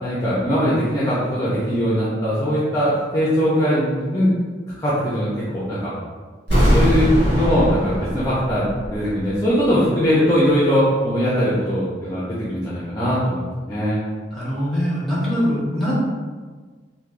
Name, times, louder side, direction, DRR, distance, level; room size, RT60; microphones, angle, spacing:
voice 1, 0.0-4.3 4.8-5.9 6.7-8.7 8.9-14.0, equal, 20° left, -9 dB, 0.5 m, -20 dB
sound 1, 6.5-9.4 9.6-9.7, equal, 65° right, 1.2 m, -20 dB
voice 2, 14.3-15.9, equal, ahead, -9 dB, 1.2 m, -22 dB
3.3 x 2.6 x 2.5 m, 1.5 s
head